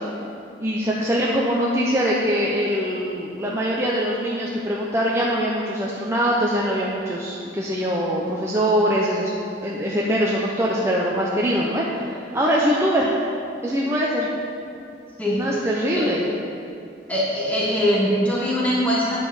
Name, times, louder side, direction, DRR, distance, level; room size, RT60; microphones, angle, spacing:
voice 1, 0.6-9.3 9.6-12.0 12.3-13.1 13.6-14.3 15.4-16.3, equal, 15° right, -5 dB, 0.8 m, -22 dB
voice 2, 17.1-19.2, equal, 10° left, -7 dB, 1.5 m, -22 dB
9.4 x 5.8 x 7.0 m, 2.6 s
head